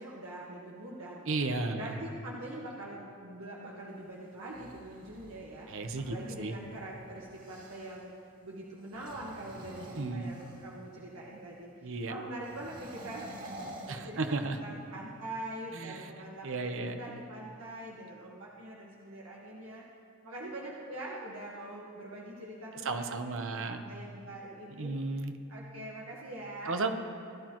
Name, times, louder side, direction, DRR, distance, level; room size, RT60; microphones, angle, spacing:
voice 1, 0.0-1.2 1.7-19.8 20.2-23.2 23.5-24.9 25.5-26.8, right 1 dB, 90° right, -4 dB, 1.5 m, -44 dB
voice 2, 1.3-1.9 5.7-6.5 10.0-10.3 11.8-12.1 13.9-14.6 15.7-16.1 16.4-17.0 18.0-18.1 22.8-23.8 24.8-25.3 26.6-26.9, right 3 dB, 65° right, 6 dB, 0.9 m, -34 dB
sound 1, 4.3-8.0 8.8-10.8 12.4-14.7, right 1 dB, 40° right, 2.4 m, -49 dB
19.0 x 11.5 x 3.1 m, 2.4 s
head